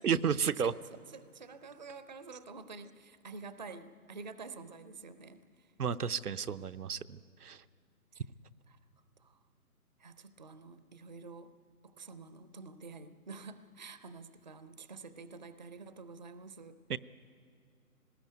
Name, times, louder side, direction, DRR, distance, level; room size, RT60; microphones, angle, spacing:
voice 1, 0.0-0.7 5.8-7.6 16.9-17.0, right 7 dB, 90° right, 11 dB, 0.7 m, -32 dB
voice 2, 0.6-5.7 8.7-8.8 9.2-9.4 10.0-11.5 11.8-16.8, right 4 dB, 30° right, 12 dB, 0.5 m, -49 dB
19.5 x 18.5 x 9.2 m, 2.3 s
figure-of-eight pair, 150°, 44 cm